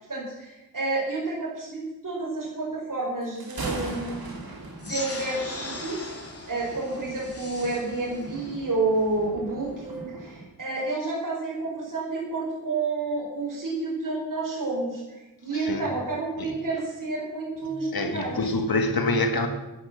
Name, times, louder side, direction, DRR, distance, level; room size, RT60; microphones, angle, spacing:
voice 1, 0.1-4.3 4.8-6.1 6.5-18.4, right 3 dB, 60° right, -4 dB, 4.8 m, -30 dB
Thunder, 3.2-10.4, right 2 dB, 80° right, 3.1 m, -40 dB
sound 1, 4.8-9.8, left 2 dB, 40° left, 3.3 m, -39 dB
voice 2, 15.5-15.9 16.4-16.5 17.6-19.5, left 2 dB, 80° left, 5 dB, 2.0 m, -26 dB
11.5 x 10.5 x 7.5 m, 1.0 s
wide cardioid pair, 65°, 36 cm